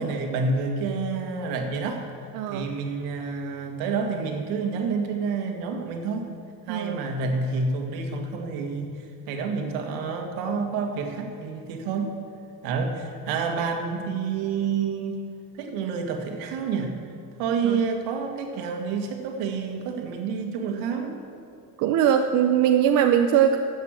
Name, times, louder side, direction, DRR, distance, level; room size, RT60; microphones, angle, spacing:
voice 1, 0.0-2.1 2.5-6.4 6.7-12.2 12.6-15.2 15.6-16.9 17.4-21.2, right 4 dB, 85° right, 4 dB, 1.8 m, -28 dB
voice 2, 2.3-2.7 6.7-7.0 17.6-17.8 21.8-23.6, right 9 dB, 60° right, 5 dB, 0.7 m, -21 dB
12.0 x 8.3 x 7.5 m, 2.4 s
cardioid pair, 140°, 34 cm